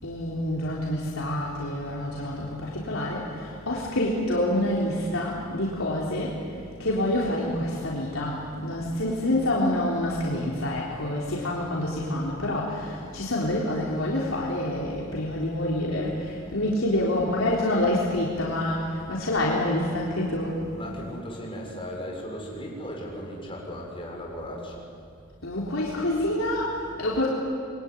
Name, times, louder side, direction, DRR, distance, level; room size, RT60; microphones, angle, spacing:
voice 1, 0.0-6.4 6.8-20.6 25.4-27.3, left 1 dB, 85° left, -4 dB, 3.9 m, -27 dB
voice 2, 20.6-24.8, equal, 25° left, -1 dB, 6.4 m, -37 dB
27.0 x 22.0 x 9.9 m, 2.4 s
head